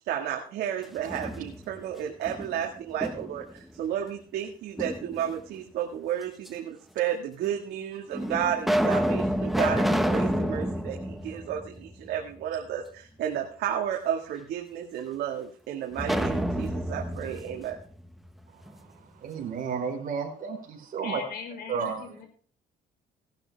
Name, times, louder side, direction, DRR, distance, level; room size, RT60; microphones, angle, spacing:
voice 1, 0.0-17.8, right 9 dB, 75° right, 1 dB, 1.9 m, -32 dB
sound 1, 0.8-1.8 2.3-3.5 4.8-5.6 6.5-6.6 7.4-7.5 8.1-12.2 12.6-12.7 16.0-18.8, equal, ahead, 1.2 m, -29 dB
voice 2, 18.5-21.2 21.7-22.0, right 6 dB, 55° right, 0 dB, 4.4 m, -33 dB
voice 3, 21.0-22.3, left 6 dB, 65° left, 4 dB, 5.2 m, -39 dB
17.0 x 11.5 x 3.5 m, 0.43 s
cardioid pair, 110°, 17 cm